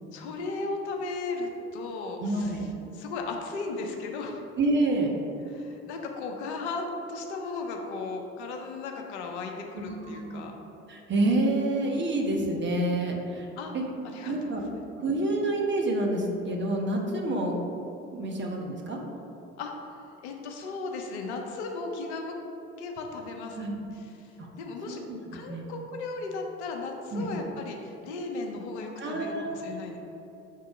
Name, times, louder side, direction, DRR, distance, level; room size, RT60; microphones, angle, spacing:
voice 1, 0.1-2.5 2.9-4.4 5.5-10.5 13.6-13.7 14.0-14.6 19.6-22.4 22.8-23.7 24.2-24.3 24.6-25.0 25.3-30.0, left 3 dB, 80° left, 2 dB, 0.7 m, -36 dB
voice 2, 2.2-2.7 4.6-5.1 9.8-10.5 10.9-13.5 13.7-13.8 14.2-14.6 15.0-17.5 18.1-19.0 23.5-23.7 24.4-24.5 24.9-25.2 25.5-25.6 27.1-27.3 29.0-29.8, right 2 dB, 35° right, 1 dB, 1.1 m, -28 dB
5.7 x 3.7 x 4.9 m, 2.9 s
hypercardioid pair, 60°, 33 cm